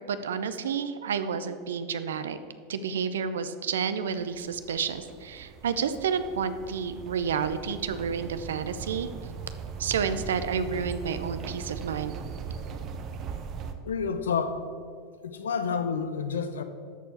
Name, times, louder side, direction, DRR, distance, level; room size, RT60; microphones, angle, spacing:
voice 1, 0.1-2.4 2.7-9.1 9.8-12.1, right 6 dB, 80° right, 12 dB, 0.6 m, -30 dB
sound 1, 4.1-13.7, right 6 dB, 45° right, 0.9 m, -39 dB
voice 2, 13.8-14.6 15.2-16.6, left 6 dB, 80° left, 10 dB, 0.8 m, -29 dB
13.0 x 4.6 x 7.2 m, 2.1 s
hypercardioid pair, 90°, 0 cm